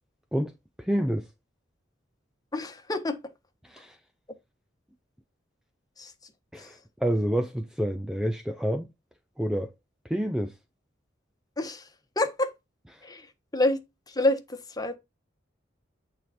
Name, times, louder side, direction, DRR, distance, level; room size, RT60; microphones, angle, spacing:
voice 1, 0.8-1.3 3.6-4.0 6.5-8.9 9.4-9.7 10.0-10.5 12.9-13.0, equal, 5° right, 0.5 m, -28 dB
voice 2, 2.5-3.2 6.0-6.3 6.6-6.8 11.6-11.9 12.1-12.5 13.0-13.8 14.1-15.0, left 2 dB, 20° left, 1.3 m, -28 dB
8.8 x 4.1 x 4.2 m
head